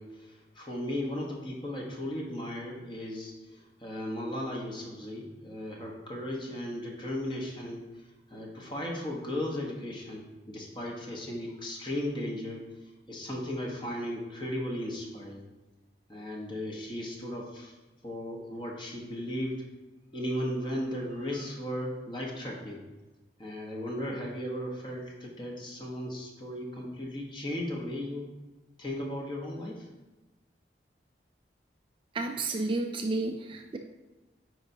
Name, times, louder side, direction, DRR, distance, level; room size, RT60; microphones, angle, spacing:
voice 1, 0.0-15.4 16.1-17.8 18.0-19.6 20.1-22.8 23.4-28.3 28.8-29.9, left 1 dB, 25° left, -2 dB, 1.1 m, -36 dB
voice 2, 32.1-33.8, right 2 dB, 30° right, 4 dB, 0.3 m, -31 dB
9.5 x 4.6 x 2.8 m, 1.2 s
head